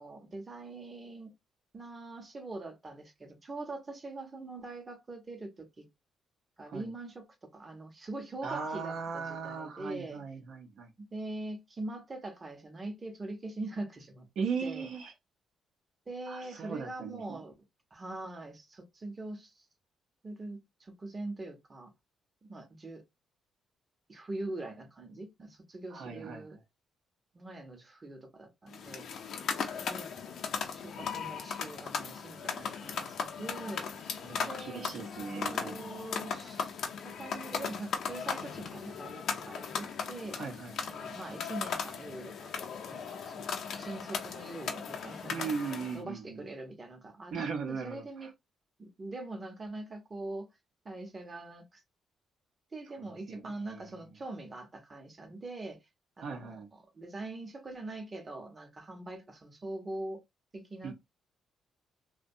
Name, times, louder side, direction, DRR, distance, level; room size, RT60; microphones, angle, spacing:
voice 1, 0.0-1.3 1.7-5.9 6.6-7.3 7.5-10.2 11.0-14.3 14.6-14.9 16.1-17.5 17.9-19.6 20.2-21.9 22.4-23.0 24.1-26.6 27.3-29.1 29.7-30.1 30.6-34.1 34.5-36.7 37.0-40.4 40.8-42.5 42.9-45.5 45.9-47.3 47.7-48.3 48.8-50.5 50.8-51.8 52.7-55.8 56.2-60.2 60.5-60.9, right 2 dB, 30° right, 0.7 m, -43 dB
voice 2, 8.4-10.9 14.4-15.1 16.3-17.4 25.9-26.5 34.2-36.0 40.3-40.9 45.3-46.4 47.3-48.3 53.1-53.9 56.2-56.7 60.8-60.9, right 5 dB, 70° right, 0.6 m, -38 dB
sound 1, 28.7-46.0, left 6 dB, 70° left, 0.6 m, -37 dB
2.6 x 2.2 x 2.5 m
cardioid pair, 90°, 0 cm